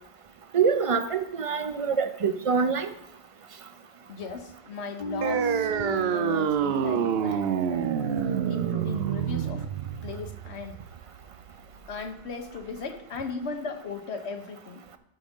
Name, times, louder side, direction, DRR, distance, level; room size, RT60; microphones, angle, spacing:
voice 1, 0.5-2.9, right 6 dB, 40° right, 10 dB, 0.5 m, -25 dB
voice 2, 4.1-9.7 10.0-10.8 11.9-14.8, left 4 dB, 80° left, 6 dB, 1.2 m, -37 dB
sound 1, 5.0-10.0, right 1 dB, 50° left, 0.9 m, -35 dB
sound 2, 5.2-12.2, right 9 dB, 70° right, 0.8 m, -28 dB
12.5 x 5.1 x 3.6 m, 0.78 s
omnidirectional pair, 1.1 m